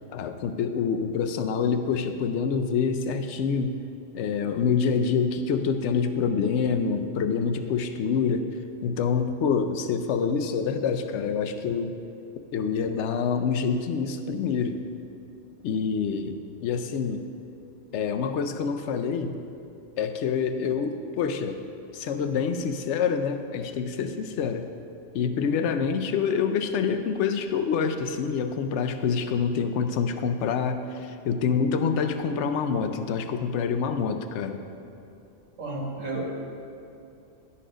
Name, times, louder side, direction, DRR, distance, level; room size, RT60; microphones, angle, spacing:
voice 1, 0.1-3.7 4.1-8.5 8.8-12.0 12.5-14.8 15.6-17.2 17.9-19.3 20.0-21.6 21.9-24.7 25.1-34.6, left 6 dB, 70° left, 7 dB, 0.8 m, -26 dB
voice 2, 35.6-36.3, right 2 dB, 85° right, -2 dB, 1.7 m, -32 dB
11.0 x 4.2 x 5.0 m, 2.7 s
omnidirectional pair, 1.3 m